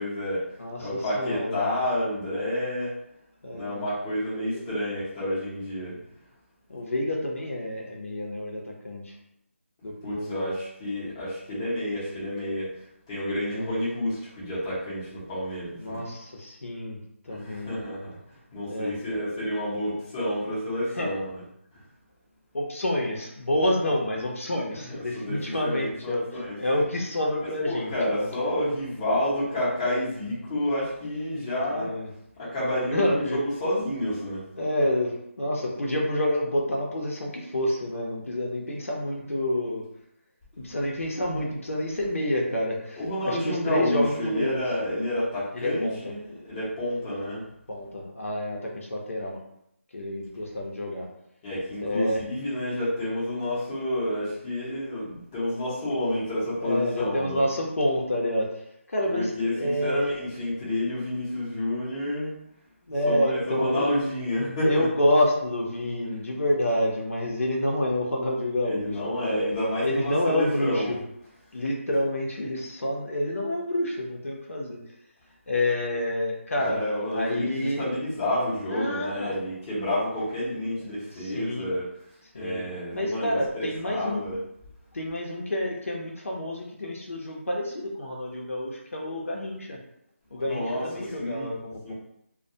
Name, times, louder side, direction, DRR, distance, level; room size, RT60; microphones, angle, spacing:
voice 1, 0.0-0.5 0.8-2.9 3.5-6.0 10.0-12.7 13.1-16.1 17.3-18.2 18.5-21.4 24.9-26.6 27.7-31.9 32.4-34.5 43.0-47.4 51.4-57.4 59.1-62.3 63.1-64.9 68.6-70.9 76.6-81.9 82.3-84.4 90.5-91.5 91.8-91.9, left 1 dB, 15° left, -11 dB, 0.7 m, -29 dB
voice 2, 0.6-1.6 3.4-3.8 4.3-4.6 5.8-6.0 6.7-9.1 9.8-10.6 13.5-13.7 15.8-17.0 17.2-17.8 18.7-19.0 21.0-21.1 22.5-26.2 26.6-28.3 31.7-32.1 32.9-33.4 34.6-39.8 40.6-44.6 45.5-46.1 47.7-49.4 49.9-51.1 51.8-52.2 56.6-58.6 58.9-60.2 62.9-63.9 64.6-69.0 69.2-69.4 69.8-71.0 71.5-74.8 75.5-76.8 77.1-77.9 78.7-79.4 81.2-81.7 82.3-82.6 82.9-84.3 84.9-89.8 90.3-91.9, left 1 dB, 75° left, -2 dB, 0.7 m, -28 dB
2.3 x 2.2 x 2.7 m, 0.74 s
figure-of-eight pair, 170°, 7 cm